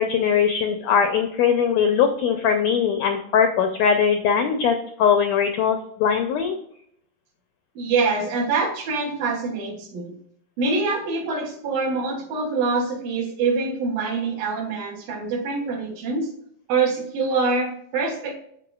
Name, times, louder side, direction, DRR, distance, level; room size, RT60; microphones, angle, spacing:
voice 1, 0.0-6.5, left 7 dB, 85° left, 6 dB, 1.5 m, -21 dB
voice 2, 7.8-10.2 10.6-16.3 16.7-18.4, right 4 dB, 75° right, 1 dB, 3.2 m, -25 dB
13.5 x 4.9 x 2.4 m, 0.70 s
omnidirectional pair, 4.0 m